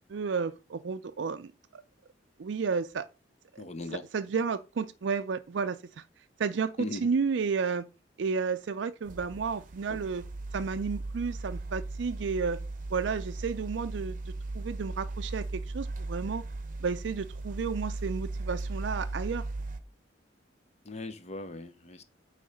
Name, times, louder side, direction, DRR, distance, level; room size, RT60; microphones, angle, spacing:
voice 1, 0.1-1.8 2.4-3.1 3.5-3.6 4.1-6.0 6.4-7.8 8.2-10.2 10.5-12.6 12.9-16.4 16.8-19.4, right 5 dB, 75° right, 0.4 m, -32 dB
voice 2, 3.6-4.1 6.8-7.1 9.9-10.0 20.8-22.0, left 2 dB, 35° left, 0.7 m, -39 dB
sound 1, 9.0-19.8, right 2 dB, 45° right, 0.7 m, -37 dB
8.5 x 3.2 x 5.2 m
head